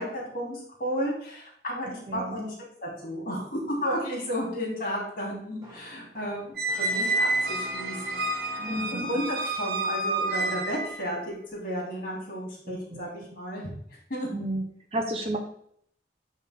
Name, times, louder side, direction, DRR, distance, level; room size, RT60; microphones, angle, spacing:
voice 1, 0.0-2.5 2.8-13.7 14.1-14.3, equal, 50° left, -3 dB, 3.2 m, -33 dB
voice 2, 2.1-2.4 8.6-9.1 12.9-13.3 14.3-14.6 14.9-15.4, right 1 dB, 35° right, 3 dB, 0.8 m, -32 dB
Brass instrument, 5.6-9.4, equal, 20° right, 2.2 m, -46 dB
Squeak, 6.6-11.0, right 2 dB, 60° right, 0.8 m, -29 dB
9.7 x 3.7 x 3.7 m, 0.64 s
head